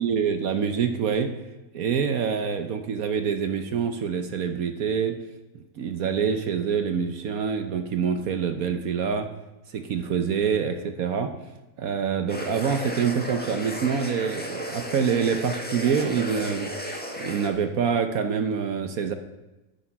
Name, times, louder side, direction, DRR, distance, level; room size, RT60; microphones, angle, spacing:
voice 1, 0.0-1.3 1.7-5.2 5.8-9.3 9.7-11.3 11.8-16.7 17.2-19.1, right 6 dB, 60° right, 8 dB, 1.1 m, -26 dB
sound 1, 12.3-17.5, equal, 5° left, 1.3 m, -34 dB
9.5 x 8.6 x 5.9 m, 1.0 s
omnidirectional pair, 1.9 m